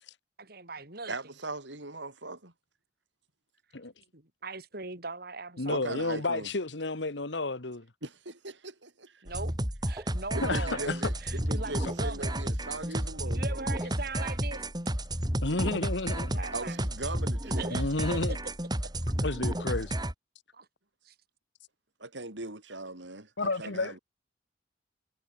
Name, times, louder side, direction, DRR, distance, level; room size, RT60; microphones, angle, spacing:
voice 1, 0.4-1.1 4.1-6.1 9.2-9.6 9.9-10.9 11.2-12.4 13.3-14.6 16.3-16.8 17.4-18.4 20.5-20.7 21.1-21.2 23.5-23.7, right 3 dB, 60° right, 5.3 m, -40 dB
voice 2, 1.1-2.5 5.7-6.5 8.0-9.2 10.0-10.1 10.3-13.6 16.5-17.7 22.0-24.0, right 2 dB, 85° right, 5.7 m, -39 dB
voice 3, 5.6-7.8 10.4-10.9 15.4-16.4 17.7-18.4 19.2-19.9 23.4-23.9, left 2 dB, 75° left, 1.7 m, -31 dB
sound 1, 9.3-20.1, right 1 dB, 25° right, 7.1 m, -32 dB
head